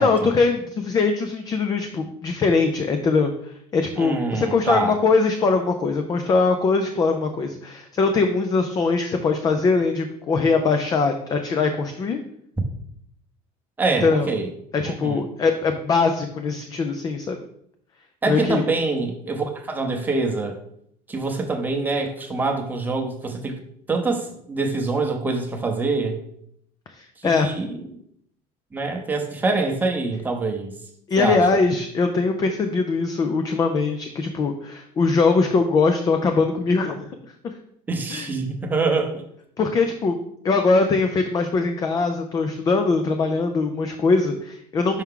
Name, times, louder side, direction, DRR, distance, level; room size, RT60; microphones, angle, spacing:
voice 1, 0.0-12.2 14.0-14.3 14.7-17.4 18.3-18.6 26.9-27.5 31.1-37.1 37.4-37.5 38.1-38.3 39.6-40.2 40.4-45.0, left 4 dB, 25° left, 6 dB, 0.4 m, -21 dB
voice 2, 4.0-5.0 13.8-14.5 14.8-15.2 18.2-20.6 21.1-23.6 23.9-26.2 27.2-27.8 28.7-30.7 31.2-31.5 37.9-39.2 44.9-45.0, right 3 dB, 10° right, 3 dB, 0.8 m, -25 dB
5.7 x 4.6 x 3.7 m, 0.71 s
cardioid pair, 150°, 14 cm